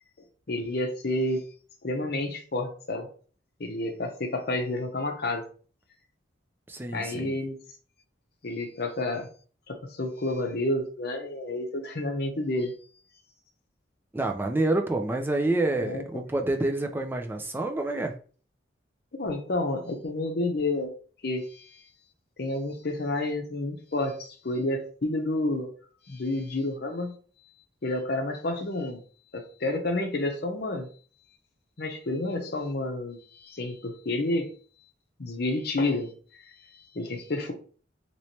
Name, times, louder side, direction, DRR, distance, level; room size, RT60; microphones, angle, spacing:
voice 1, 0.5-1.4 1.8-3.1 3.6-5.4 6.9-7.6 8.4-9.3 9.7-12.7 15.8-16.2 19.1-20.9 21.2-21.8 22.4-25.7 26.1-27.2 27.8-29.0 29.3-30.9 31.8-34.5 35.2-37.5, left 2 dB, 50° left, 0.7 m, -30 dB
voice 2, 6.7-7.4 14.1-18.1, right 2 dB, 10° right, 0.4 m, -28 dB
3.1 x 3.0 x 2.8 m
head